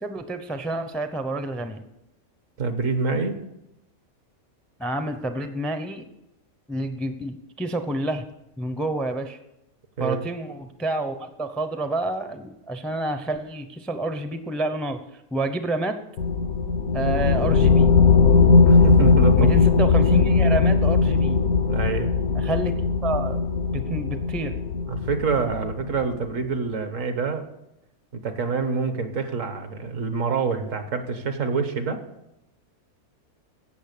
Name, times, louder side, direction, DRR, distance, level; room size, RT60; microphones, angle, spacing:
voice 1, 0.0-1.8 4.8-6.0 6.7-8.2 8.6-9.4 10.0-16.0 16.9-17.9 19.4-21.4 22.3-22.7 23.0-23.4 23.7-24.6, right 2 dB, ahead, 8 dB, 0.6 m, -29 dB
voice 2, 2.6-3.4 10.0-10.2 18.6-19.5 21.7-22.1 24.9-27.4 28.1-32.0, right 4 dB, 60° right, 7 dB, 1.6 m, -26 dB
sound 1, 16.2-26.2, left 4 dB, 75° left, 1.3 m, -19 dB
16.5 x 6.5 x 6.8 m, 0.87 s
omnidirectional pair, 1.5 m